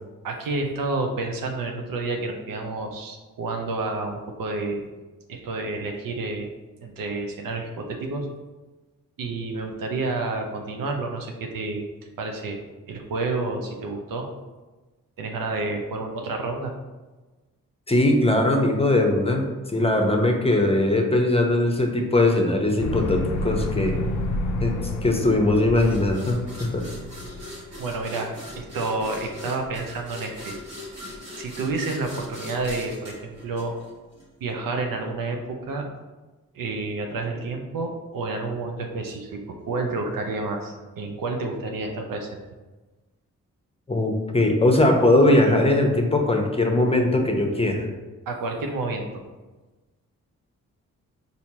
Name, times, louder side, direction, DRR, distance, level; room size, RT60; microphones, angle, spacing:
voice 1, 0.2-4.8 5.3-6.5 6.8-8.3 9.2-11.8 12.2-12.6 12.9-14.3 15.2-16.7 27.8-30.6 31.4-33.7 34.4-35.9 36.5-42.4 48.3-49.2, right 3 dB, 75° right, 3 dB, 0.6 m, -29 dB
voice 2, 17.9-24.0 24.6-24.7 25.0-26.4 26.7-26.8 43.9-47.9, left 1 dB, 15° left, 2 dB, 0.8 m, -20 dB
sound 1, 22.8-27.6, left 1 dB, 60° left, 0.5 m, -29 dB
sound 2, 25.7-34.2, left 1 dB, 50° right, 1.2 m, -40 dB
4.3 x 2.7 x 2.8 m, 1.2 s
supercardioid pair, 45°, 34 cm